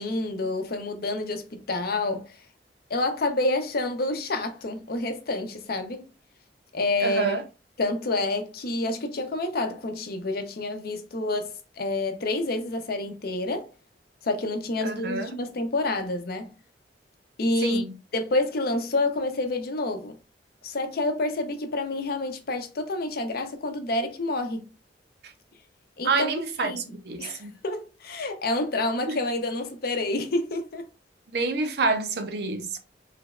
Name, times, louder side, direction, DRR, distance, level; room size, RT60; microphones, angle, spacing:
voice 1, 0.0-2.4 2.9-6.1 6.7-7.4 7.8-13.7 14.2-16.5 17.4-17.8 18.1-20.2 20.6-24.7 26.0-26.3 26.6-26.8 27.2-30.9, left 2 dB, 55° left, 0.6 m, -28 dB
voice 2, 7.0-7.4 14.8-15.3 17.6-17.9 26.0-27.5 29.1-29.2 31.3-32.8, right 3 dB, 65° right, 0.6 m, -27 dB
3.3 x 3.0 x 2.4 m
head